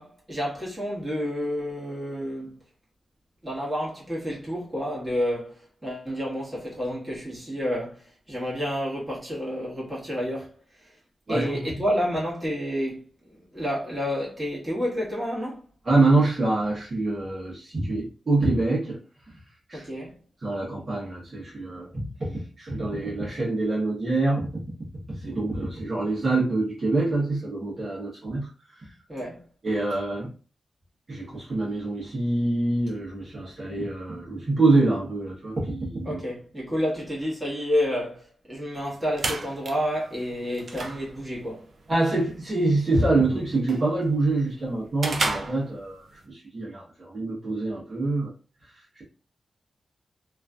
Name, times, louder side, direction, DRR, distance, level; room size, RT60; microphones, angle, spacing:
voice 1, 0.0-2.6 3.4-10.5 10.8-11.0 11.3-15.6 19.7-20.2 29.1-29.4 36.0-41.7, equal, 15° right, 1.4 m, -30 dB
voice 2, 11.3-11.6 15.8-19.0 19.7-19.8 20.4-24.6 25.1-28.5 28.8-28.9 29.6-30.3 31.1-36.2 41.9-48.3 48.9-49.0, right 2 dB, 45° right, 1.1 m, -25 dB
sound 1, 38.8-46.3, right 3 dB, 60° right, 0.5 m, -35 dB
3.0 x 2.5 x 2.3 m
wide cardioid pair, 110°, 0 cm